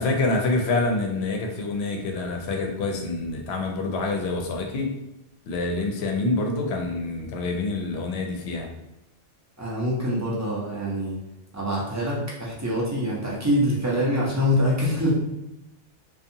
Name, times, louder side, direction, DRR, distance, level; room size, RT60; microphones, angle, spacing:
voice 1, 0.0-4.9 5.5-8.7, left 2 dB, 70° left, 2 dB, 0.8 m, -26 dB
voice 2, 9.6-11.2 11.5-15.1, equal, 25° right, -6 dB, 0.4 m, -25 dB
2.6 x 2.3 x 2.6 m, 0.92 s
omnidirectional pair, 1.2 m